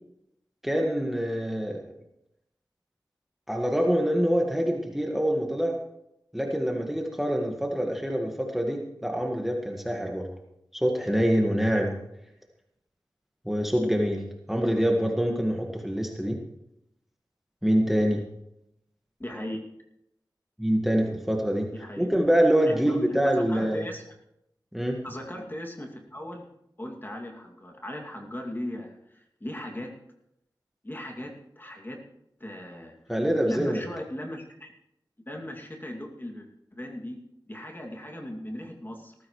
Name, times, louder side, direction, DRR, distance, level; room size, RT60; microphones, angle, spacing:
voice 1, 0.6-1.9 3.5-5.8 6.3-10.3 10.7-12.0 13.4-16.4 17.6-18.2 20.6-21.7 22.0-23.8 24.7-25.0 33.1-33.8, equal, 5° right, 1 dB, 1.6 m, -25 dB
voice 2, 19.2-19.6 21.7-22.1 22.6-23.2 23.5-24.0 25.0-26.5 26.8-29.9 30.8-32.0 32.4-33.1 33.5-34.7 35.3-37.2 37.5-39.1, left 1 dB, 25° left, 1 dB, 2.4 m, -38 dB
18.5 x 14.5 x 3.2 m, 0.82 s
wide cardioid pair, 65°, 8 cm